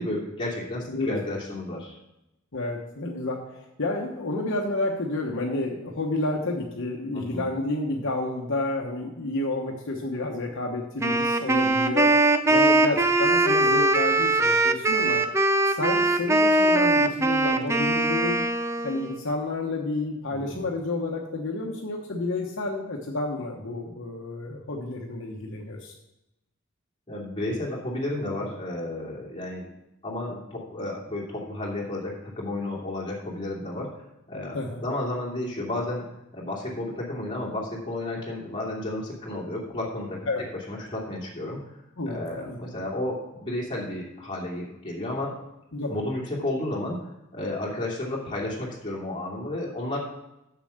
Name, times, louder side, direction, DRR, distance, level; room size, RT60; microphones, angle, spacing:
voice 1, 0.0-2.0 7.1-7.5 20.3-20.7 27.1-29.7 30.0-33.9 34.3-36.0 36.3-40.3 40.7-41.8 42.1-45.3 45.9-47.0 47.3-50.0, left 1 dB, 25° left, -4 dB, 2.6 m, -32 dB
voice 2, 0.9-1.2 2.5-12.1 12.5-15.2 15.7-18.4 18.8-25.9 34.5-34.8 40.3-40.4 42.0-42.6 45.7-46.0, left 2 dB, 60° left, 0 dB, 1.1 m, -30 dB
Wind instrument woodwind instrument, 11.0-19.2, right 2 dB, 15° right, 0.5 m, -21 dB
7.1 x 6.8 x 6.5 m, 0.90 s
head